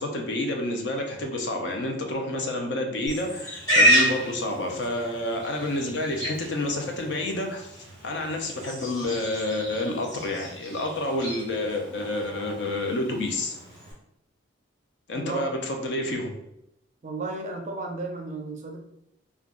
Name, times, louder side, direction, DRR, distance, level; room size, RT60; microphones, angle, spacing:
voice 1, 0.0-7.7 8.0-13.5 15.1-16.3, left 1 dB, 60° left, 3 dB, 0.5 m, -29 dB
Livestock farm animals working animals, 3.1-13.9, equal, 15° left, 1.4 m, -29 dB
voice 2, 15.1-15.5 17.0-18.8, right 3 dB, 35° right, 2 dB, 0.4 m, -33 dB
2.5 x 2.2 x 3.6 m, 0.80 s
head